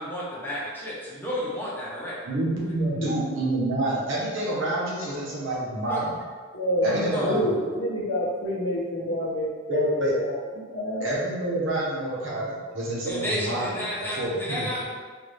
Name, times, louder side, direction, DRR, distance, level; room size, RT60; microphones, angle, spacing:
voice 1, 0.0-2.2 5.9-6.0 6.8-7.4 13.0-14.8, equal, 10° left, -7 dB, 0.9 m, -31 dB
voice 2, 2.2-6.2 6.8-7.4 9.7-10.1 11.0-13.8 14.2-14.8, right 1 dB, 65° right, -6 dB, 1.1 m, -28 dB
voice 3, 2.8-3.2 6.5-10.4 10.7-11.1, equal, 70° left, -3 dB, 0.8 m, -28 dB
4.1 x 2.6 x 3.3 m, 1.5 s
head